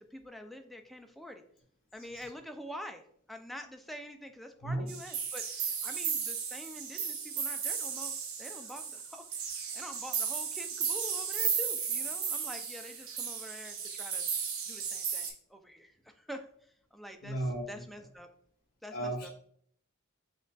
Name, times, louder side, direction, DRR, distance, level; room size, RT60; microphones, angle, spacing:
voice 1, 0.0-1.4 1.9-14.3 14.7-16.5 16.9-18.3 18.8-19.3, equal, ahead, 5 dB, 0.3 m, -46 dB
sound 1, 4.9-15.3, right 6 dB, 80° right, 0.8 m, -35 dB
voice 2, 17.2-17.6 18.9-19.3, right 1 dB, 45° left, -1 dB, 1.3 m, -34 dB
7.0 x 2.4 x 2.2 m, 0.63 s
head